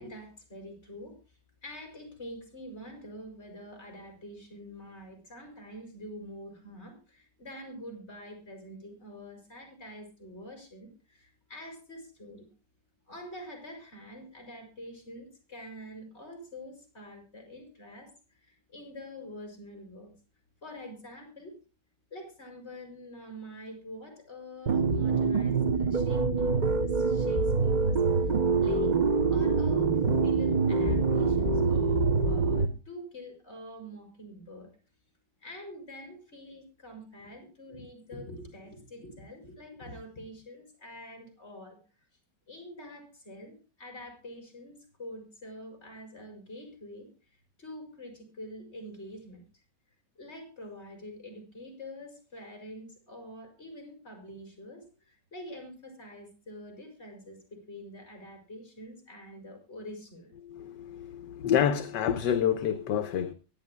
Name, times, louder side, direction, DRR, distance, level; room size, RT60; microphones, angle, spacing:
voice 1, 0.0-12.5 13.1-20.1 20.6-21.6 22.1-28.3 28.6-28.9 29.3-34.7 35.4-41.8 42.5-47.1 47.6-49.4 50.2-60.3, left 1 dB, 35° left, 5.5 m, -46 dB
sound 1, 24.7-32.7, right 4 dB, 75° right, 0.4 m, -25 dB
voice 2, 60.4-63.3, left 9 dB, 70° left, 1.4 m, -28 dB
24.0 x 10.5 x 2.2 m
omnidirectional pair, 2.0 m